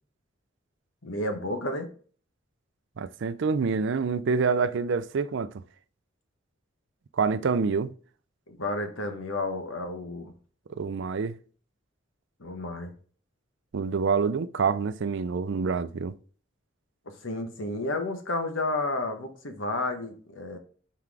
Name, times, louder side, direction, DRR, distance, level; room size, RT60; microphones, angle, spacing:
voice 1, 1.0-1.9 8.5-10.3 12.4-12.9 17.2-20.6, left 2 dB, 85° left, 1.3 m, -31 dB
voice 2, 3.0-5.5 7.2-7.9 10.7-11.4 13.7-16.1, right 5 dB, 65° right, 0.5 m, -27 dB
5.8 x 4.6 x 4.8 m
head